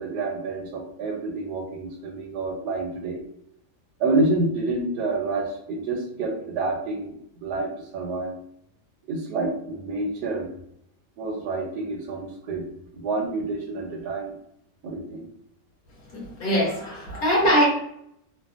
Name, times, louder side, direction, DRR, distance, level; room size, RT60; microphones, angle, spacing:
voice 1, 0.0-3.2 4.0-7.1 7.4-8.3 9.1-10.5 11.2-12.6 12.9-14.3 14.8-15.2, right 2 dB, 70° right, 1 dB, 1.1 m, -28 dB
voice 2, 16.1-17.6, equal, 60° left, -4 dB, 1.3 m, -22 dB
3.2 x 2.1 x 2.4 m, 0.70 s
omnidirectional pair, 2.0 m